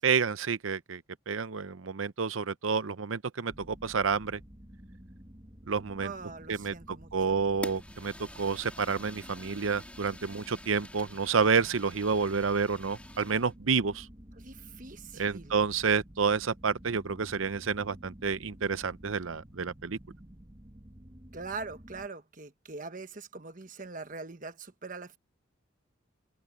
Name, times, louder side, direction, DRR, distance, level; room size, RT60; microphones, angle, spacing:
voice 1, 0.0-4.4 5.7-6.1 6.5-14.1 15.1-20.0, right 5 dB, 80° right, 0.7 m, -29 dB
sound 1, 3.5-22.1, equal, 25° right, 2.0 m, -51 dB
voice 2, 6.0-7.4 14.4-15.6 21.3-25.2, right 4 dB, 40° right, 1.2 m, -42 dB
Fire, 7.6-13.5, left 1 dB, 5° left, 2.8 m, -47 dB
head